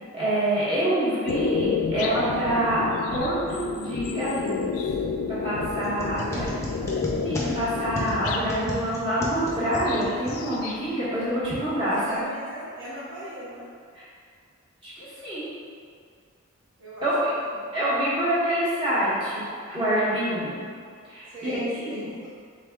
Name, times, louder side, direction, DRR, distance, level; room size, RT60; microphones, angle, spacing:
voice 1, 0.1-2.8 3.1-4.7 5.3-6.5 7.2-12.2 13.9-14.0 14.8-15.5 17.0-17.2 17.7-20.7 21.1-22.1, right 1 dB, 25° right, -11 dB, 1.3 m, -26 dB
sound 1, 1.3-8.5 9.4-10.8 11.1-12.0, left 5 dB, 90° left, 0.3 m, -30 dB
sound 2, 5.8-10.9, left 1 dB, 15° left, 0.5 m, -34 dB
voice 2, 6.2-6.9 11.7-13.7 16.8-17.1 17.3-17.8 21.3-22.3, right 1 dB, 70° right, -8 dB, 0.9 m, -40 dB
5.2 x 3.5 x 2.3 m, 2.2 s
head